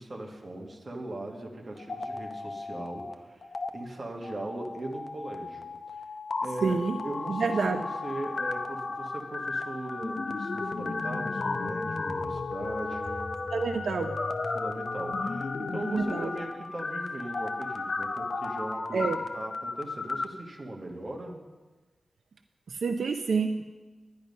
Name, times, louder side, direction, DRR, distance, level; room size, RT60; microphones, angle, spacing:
voice 1, 0.0-6.1 6.4-13.3 14.5-21.4, right 2 dB, 35° right, 0 dB, 1.5 m, -39 dB
sound 1, 1.8-3.1 3.4-3.7 4.2-20.2, left 3 dB, 50° left, 0.6 m, -34 dB
voice 2, 6.6-7.0 7.3-7.8 13.5-14.2 15.9-16.3 18.9-19.2 22.7-23.7, right 5 dB, 80° right, 6 dB, 0.5 m, -28 dB
10.5 x 10.5 x 5.4 m, 1.2 s
wide cardioid pair, 150°, 0 cm